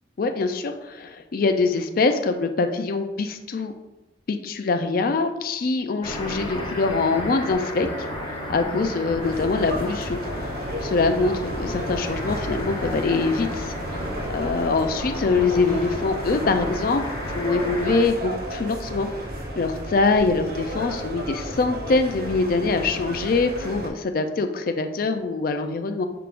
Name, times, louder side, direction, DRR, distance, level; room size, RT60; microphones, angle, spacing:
voice 1, 0.2-3.7 4.3-7.9 8.5-10.5 10.8-13.7 14.3-17.0 17.3-19.1 19.6-26.0, left 3 dB, 55° left, 7 dB, 0.4 m, -24 dB
sound 1, 6.0-18.1, equal, 25° left, 0.7 m, -33 dB
sound 2, 9.2-23.9, equal, 55° right, 0.7 m, -33 dB
5.7 x 3.7 x 2.5 m, 1.1 s
head